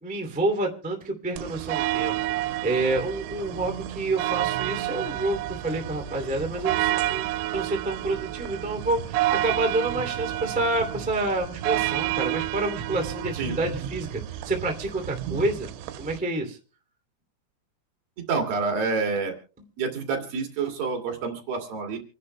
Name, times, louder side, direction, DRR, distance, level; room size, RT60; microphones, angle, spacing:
voice 1, 0.0-2.1 2.4-15.7 16.0-16.6, right 2 dB, 5° right, 2 dB, 0.9 m, -28 dB
sound 1, 1.4-16.2, right 14 dB, 90° right, 3.2 m, -30 dB
voice 2, 18.3-19.3 19.8-22.0, right 4 dB, 55° right, 3 dB, 3.6 m, -28 dB
28.0 x 11.0 x 2.2 m, 0.36 s
omnidirectional pair, 5.3 m